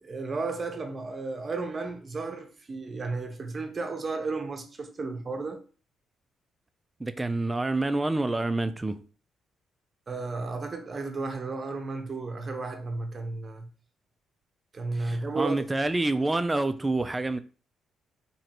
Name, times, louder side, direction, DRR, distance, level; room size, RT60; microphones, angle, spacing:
voice 1, 0.0-5.6 10.1-13.7 14.7-15.7, right 3 dB, 35° right, 0.8 m, -33 dB
voice 2, 7.0-9.0 14.9-17.4, right 2 dB, 15° right, 0.4 m, -27 dB
3.0 x 2.6 x 4.3 m
cardioid pair, 90°, 0 cm